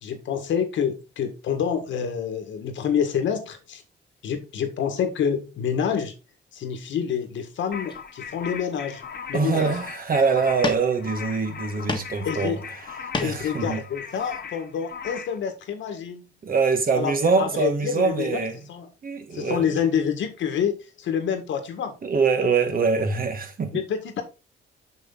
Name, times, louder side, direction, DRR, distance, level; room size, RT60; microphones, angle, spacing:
voice 1, 0.0-3.8 4.2-6.1 6.5-9.0 9.3-9.7 12.3-12.6 13.2-16.2 16.9-17.1 17.4-18.4 18.7-18.9 19.3-20.7 21.0-21.9 23.7-24.2, left 7 dB, 75° left, 1.9 m, -27 dB
sound 1, 7.2-7.4 7.9-8.6 9.1-9.2 9.5-10.0 10.6-11.3 11.6-12.2 12.6-13.6, left 3 dB, 25° left, 1.5 m, -33 dB
sound 2, 7.7-15.4, left 6 dB, 55° left, 1.6 m, -38 dB
voice 2, 9.3-13.8 16.4-18.7 19.0-19.7 22.0-23.8, right 5 dB, 45° right, 2.0 m, -24 dB
6.6 x 6.5 x 4.0 m
cardioid pair, 90°, 20 cm